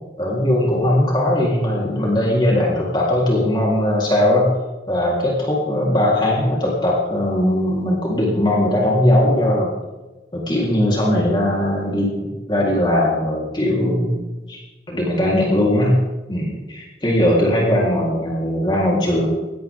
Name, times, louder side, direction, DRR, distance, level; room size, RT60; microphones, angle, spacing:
voice 1, 0.2-4.5 4.9-9.7 10.3-14.2 14.5-16.0 16.3-19.3, left 1 dB, 25° left, -3 dB, 3.7 m, -19 dB
19.0 x 16.5 x 3.7 m, 1.1 s
head